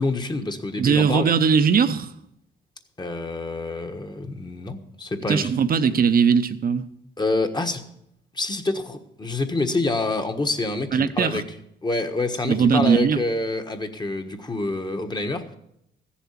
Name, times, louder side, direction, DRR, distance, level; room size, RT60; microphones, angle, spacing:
voice 1, 0.0-1.3 3.0-5.5 7.2-7.8 8.3-11.4 11.8-15.6, left 2 dB, 20° left, 1.4 m, -27 dB
voice 2, 0.8-2.1 5.3-6.9 10.9-11.4 12.4-13.2, right 6 dB, 45° right, 0.9 m, -19 dB
15.0 x 7.2 x 7.4 m
cardioid pair, 90°, 20 cm